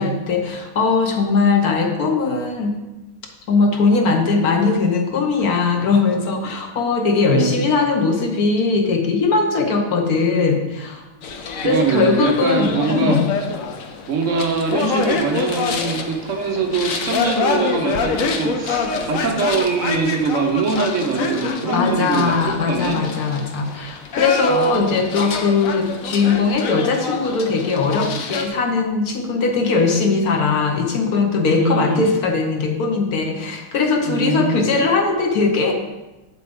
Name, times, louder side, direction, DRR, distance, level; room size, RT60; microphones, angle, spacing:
voice 1, 0.0-2.7 3.5-11.0 11.6-13.3 21.7-35.7, left 4 dB, 60° left, 3 dB, 1.0 m, -19 dB
sound 1, 11.2-28.5, left 5 dB, 85° left, 0.7 m, -26 dB
voice 2, 11.6-13.2 14.1-23.1 24.5-25.1 31.5-32.1 34.1-34.7, right 4 dB, 65° right, 3 dB, 0.7 m, -22 dB
7.7 x 7.6 x 3.5 m, 1.1 s
omnidirectional pair, 2.4 m